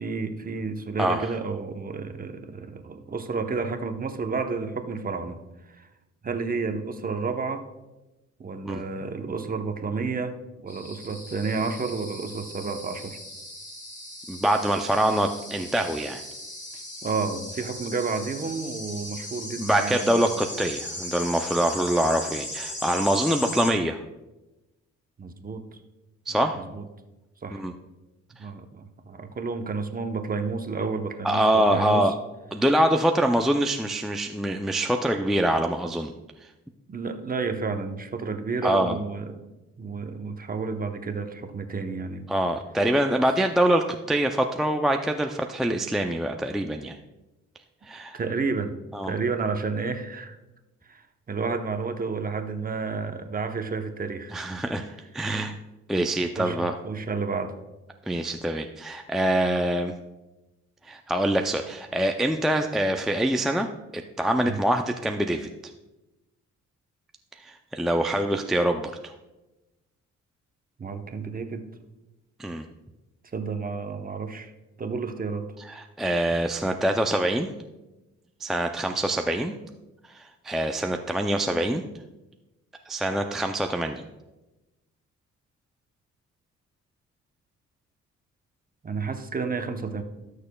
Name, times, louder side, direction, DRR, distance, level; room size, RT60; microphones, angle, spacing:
voice 1, 0.0-5.4 5.7-5.9 6.2-7.6 8.4-10.3 10.6-13.2 16.7-20.3 23.4-23.5 25.2-25.7 26.3-26.8 27.4-27.6 28.4-32.1 36.9-39.5 39.8-42.2 48.1-48.7 49.0-50.4 50.9-54.4 56.4-57.5 64.4-64.6 70.8-71.7 73.3-74.5 74.8-75.5 88.8-90.0, right 4 dB, 30° right, 6 dB, 0.9 m, -31 dB
voice 2, 1.0-1.3 8.6-8.8 14.3-16.2 19.6-24.0 26.3-26.6 27.5-27.7 31.2-32.1 32.5-36.1 38.6-39.0 42.3-47.0 47.8-48.2 48.9-49.1 54.3-55.6 55.9-56.7 58.1-59.9 60.8-65.5 67.4-69.1 72.4-72.7 75.6-77.5 78.4-79.5 80.1-81.8 82.9-84.0, right 1 dB, ahead, 4 dB, 0.4 m, -25 dB
sound 1, 10.7-23.7, left 1 dB, 25° left, 2.9 m, -38 dB
17.5 x 6.6 x 2.3 m, 1.1 s
cardioid pair, 90°, 30 cm